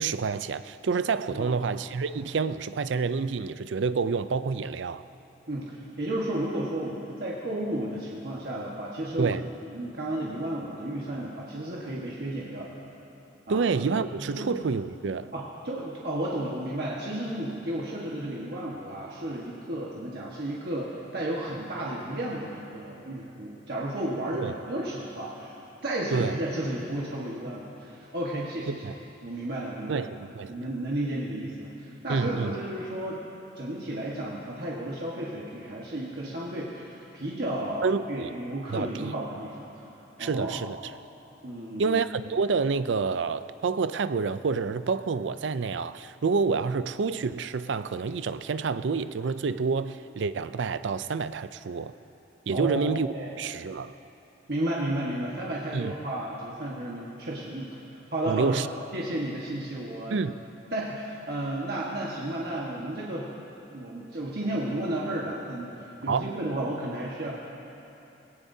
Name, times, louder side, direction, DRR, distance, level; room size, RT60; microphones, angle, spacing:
voice 1, 0.0-5.0 9.2-9.5 13.5-15.3 24.3-24.5 26.1-26.4 28.7-28.9 29.9-30.5 32.1-32.6 37.8-38.3 38.7-39.1 40.2-40.8 41.8-51.9 52.5-53.1 53.4-53.9 55.7-55.9 58.3-58.7 60.1-60.4 66.1-66.3, right 5 dB, 75° right, 0.4 m, -28 dB
voice 2, 5.5-9.4 9.7-12.8 13.5-13.6 14.0-14.5 15.3-25.6 25.8-28.8 29.2-30.1 30.5-33.2 33.5-39.7 40.2-40.7 41.4-42.0 52.5-53.3 54.5-58.7 58.9-60.2 60.7-63.3 63.7-67.3, right 1 dB, 60° right, 1.4 m, -33 dB
21.0 x 17.5 x 2.8 m
head